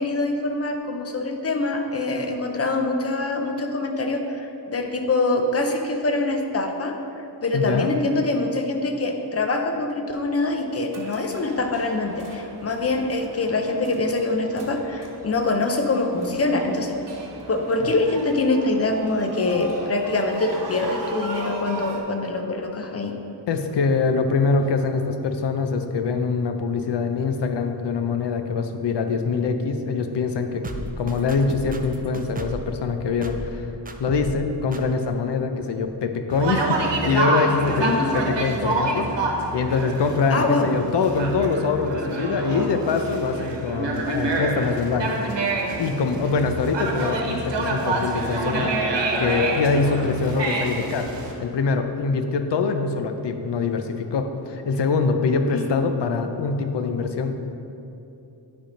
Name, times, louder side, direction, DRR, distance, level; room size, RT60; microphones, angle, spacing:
voice 1, 0.0-17.0 17.5-23.2 37.8-38.1 40.3-40.7 55.5-55.8, left 2 dB, 35° left, 4 dB, 0.6 m, -24 dB
voice 2, 7.5-7.9 23.5-30.6 31.0-33.7 34.0-45.1 45.4-45.5 45.8-48.7 49.2-51.1 51.4-57.3, left 4 dB, 75° left, 6 dB, 0.6 m, -24 dB
sound 1, 10.9-22.0, right 2 dB, 50° right, 0.9 m, -38 dB
sound 2, 30.6-32.7 33.2-33.6 33.8-34.4 34.7-34.8, right 2 dB, 20° right, 0.4 m, -34 dB
Conversation, 36.3-51.3, right 2 dB, 80° right, 1.1 m, -27 dB
10.0 x 3.5 x 5.2 m, 2.8 s
wide cardioid pair, 140°, 42 cm